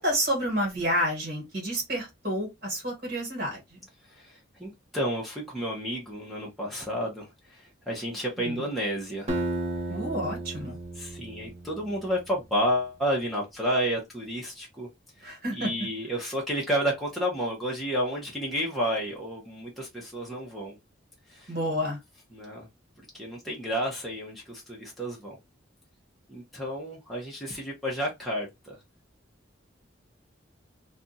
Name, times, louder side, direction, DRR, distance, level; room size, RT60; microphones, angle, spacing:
voice 1, 0.0-3.8 8.4-8.7 9.9-10.8 15.2-15.7 21.5-22.0, equal, 50° right, 1.5 m, -29 dB
voice 2, 4.0-9.5 11.0-14.9 15.2-20.8 21.3-21.5 22.3-22.7 23.0-25.4 26.3-28.8, equal, ahead, 0.7 m, -31 dB
Acoustic guitar, 9.3-12.3, right 1 dB, 35° right, 0.5 m, -34 dB
2.5 x 2.3 x 3.9 m
head